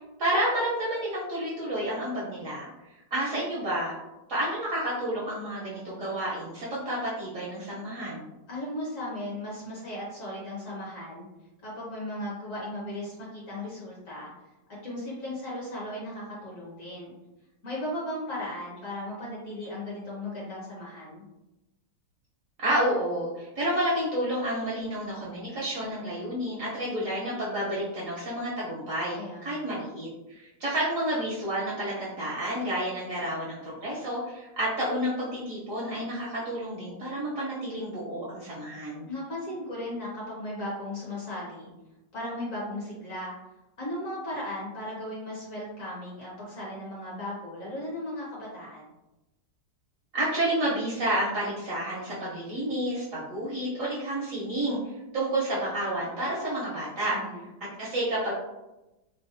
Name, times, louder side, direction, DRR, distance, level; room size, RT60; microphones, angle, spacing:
voice 1, 0.2-2.7 3.1-3.9 4.3-8.3 22.6-39.1 50.1-57.2 57.8-58.3, right 1 dB, 60° right, -6 dB, 0.9 m, -30 dB
voice 2, 8.5-11.2 11.6-14.3 14.8-17.1 17.6-21.2 29.1-29.7 39.1-41.7 42.1-43.3 43.8-48.9 57.1-57.4, left 1 dB, 55° left, -5 dB, 1.1 m, -36 dB
3.9 x 2.2 x 2.5 m, 0.99 s
omnidirectional pair, 2.0 m